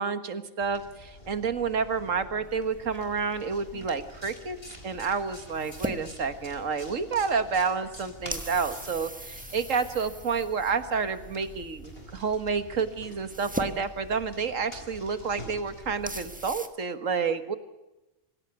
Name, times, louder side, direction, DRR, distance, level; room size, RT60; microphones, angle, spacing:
voice 1, 0.0-4.6 4.8-17.5, right 5 dB, 80° right, 11 dB, 1.9 m, -29 dB
sound 1, 0.6-16.5, left 1 dB, 45° left, 4.7 m, -47 dB
sound 2, 2.4-16.7, right 1 dB, 5° right, 1.3 m, -42 dB
25.5 x 16.5 x 8.1 m, 0.99 s
omnidirectional pair, 1.3 m